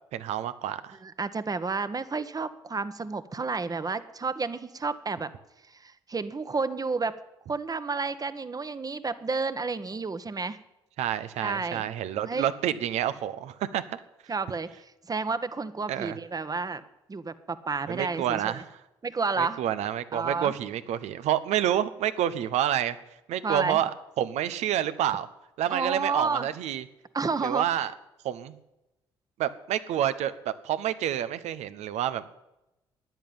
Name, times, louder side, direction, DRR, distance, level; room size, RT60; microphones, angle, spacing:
voice 1, 0.1-1.0 11.0-14.0 15.9-16.2 17.9-18.6 19.4-23.0 23.3-25.3 25.6-26.8 27.4-27.9 28.2-28.5 29.4-32.3, right 11 dB, 65° right, 13 dB, 1.1 m, -28 dB
voice 2, 1.0-5.3 5.7-7.1 7.5-10.6 11.4-11.9 12.3-12.5 14.3-16.8 17.1-18.6 19.0-19.7 20.1-20.5 23.4-23.8 25.7-26.5 27.1-27.7, right 4 dB, 30° right, 12 dB, 1.3 m, -31 dB
15.0 x 10.5 x 8.8 m, 0.94 s
hypercardioid pair, 45°, 12 cm